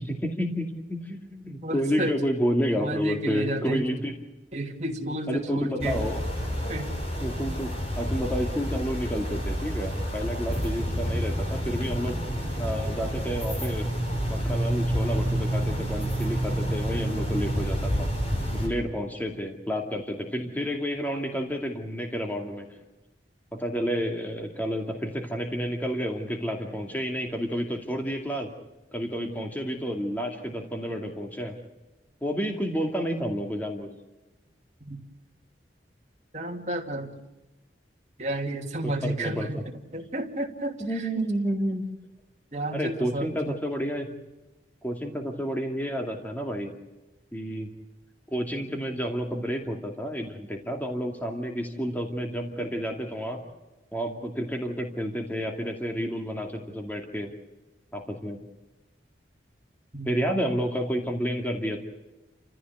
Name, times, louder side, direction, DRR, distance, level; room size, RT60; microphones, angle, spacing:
voice 1, 0.0-4.1 5.0-6.2 7.2-12.2 12.6-13.9 14.3-18.1 18.5-22.7 23.5-28.5 28.9-31.6 32.2-33.9 38.8-39.5 40.8-41.9 42.7-44.1 44.8-46.7 47.3-47.7 48.3-53.4 53.9-57.3 57.9-58.4 60.1-61.8, equal, 10° left, 3 dB, 2.4 m, -30 dB
voice 2, 1.6-2.1 2.7-3.9 4.5-6.0 6.7-6.9 34.8-35.0 36.3-37.1 38.2-41.3 42.5-43.5 59.9-60.2, right 1 dB, 40° right, 2 dB, 2.7 m, -32 dB
sound 1, 5.8-18.7, equal, 35° left, 5.9 m, -29 dB
30.0 x 14.5 x 8.0 m, 1.1 s
head